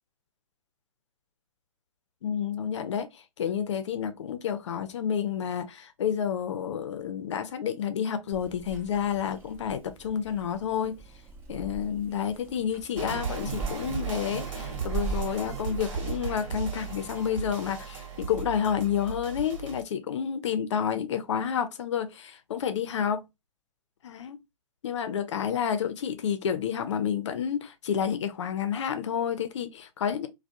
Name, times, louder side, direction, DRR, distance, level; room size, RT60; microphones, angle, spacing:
voice 1, 2.2-3.1 3.4-11.0 11.5-23.2 24.0-24.4 24.8-30.3, left 8 dB, 60° left, 0.6 m, -30 dB
Purr / Meow, 8.3-17.1, right 5 dB, 10° right, 0.5 m, -41 dB
sound 1, 12.9-19.8, right 6 dB, 60° right, 1.1 m, -36 dB
2.2 x 2.2 x 2.8 m
figure-of-eight pair, 110°, 18 cm